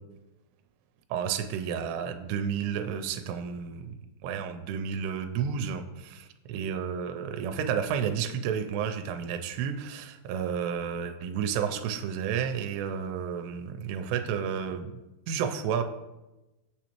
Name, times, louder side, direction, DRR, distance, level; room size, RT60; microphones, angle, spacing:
voice 1, 1.1-3.9 4.2-14.9 15.3-15.8, right 7 dB, 85° right, 7 dB, 2.6 m, -31 dB
6.6 x 6.0 x 2.9 m, 1.0 s
omnidirectional pair, 4.9 m